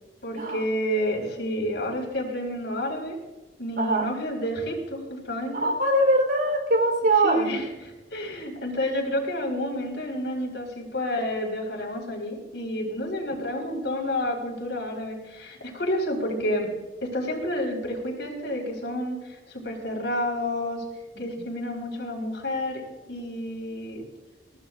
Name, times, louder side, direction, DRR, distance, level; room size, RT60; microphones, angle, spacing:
voice 1, 0.2-3.2 3.6-5.7 7.2-16.7 17.0-20.9 21.2-24.0, equal, 75° left, 2 dB, 4.9 m, -30 dB
voice 2, 3.8-4.1 5.5-7.5 13.3-13.4, right 1 dB, 65° right, 4 dB, 3.6 m, -22 dB
21.5 x 17.5 x 2.5 m, 1.1 s
head